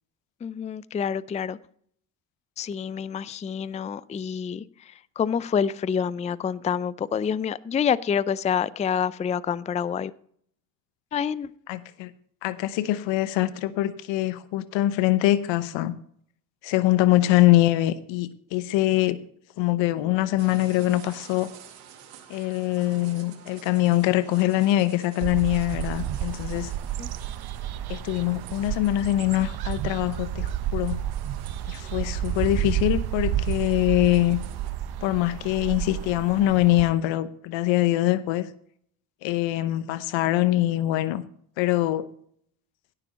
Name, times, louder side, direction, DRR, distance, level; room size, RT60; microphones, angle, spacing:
voice 1, 0.4-1.6 2.6-10.1 11.1-11.5 27.0-27.1, left 7 dB, 15° left, 18 dB, 0.4 m, -27 dB
voice 2, 11.7-12.1 12.4-16.0 16.6-19.2 19.6-21.5 22.3-26.7 27.9-31.0 31.7-34.4 35.0-38.5 39.2-41.2 41.6-42.1, left 15 dB, 65° left, 15 dB, 0.9 m, -23 dB
sound 1, 20.4-34.7, right 8 dB, 80° right, 2.0 m, -49 dB
sound 2, 25.2-36.9, right 11 dB, 50° right, 0.9 m, -31 dB
16.5 x 7.0 x 4.2 m, 0.63 s
hypercardioid pair, 65°, 48 cm